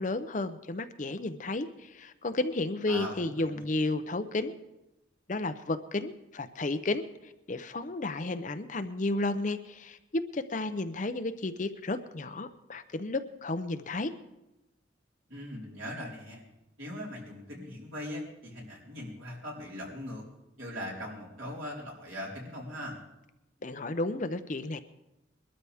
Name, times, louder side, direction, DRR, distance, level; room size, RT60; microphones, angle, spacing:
voice 1, 0.0-4.5 5.3-14.1 23.6-24.8, left 2 dB, 40° left, 10 dB, 0.6 m, -32 dB
voice 2, 2.9-3.6 15.3-16.4 16.8-20.2 20.6-23.0, equal, 85° right, -3 dB, 4.3 m, -40 dB
21.5 x 13.0 x 3.5 m, 0.94 s
head